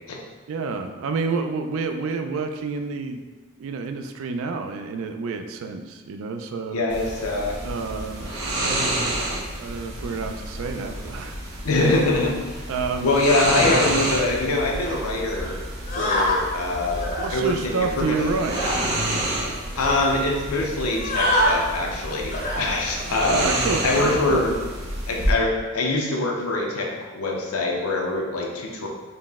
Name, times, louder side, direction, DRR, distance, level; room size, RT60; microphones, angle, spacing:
voice 1, 0.5-3.2 3.6-6.8 7.6-8.3 9.6-11.6 12.7-13.1 13.5-13.8 17.2-18.8 23.2-24.5, right 4 dB, 65° right, 6 dB, 0.3 m, -29 dB
voice 2, 6.7-7.6 11.6-12.6 13.0-15.6 15.9-18.2 19.8-24.5 25.1-28.9, left 2 dB, 85° left, 0 dB, 0.6 m, -24 dB
sound 1, 6.9-25.3, right 1 dB, 85° right, 0.8 m, -29 dB
sound 2, 13.6-13.8 14.8-15.0 15.9-16.4 16.9-17.3 18.4-18.9 19.4-19.5 19.8-20.0 20.8-21.6 22.3-22.6 23.2-23.5, left 1 dB, 40° left, 0.6 m, -25 dB
4.0 x 2.1 x 3.4 m, 1.3 s
head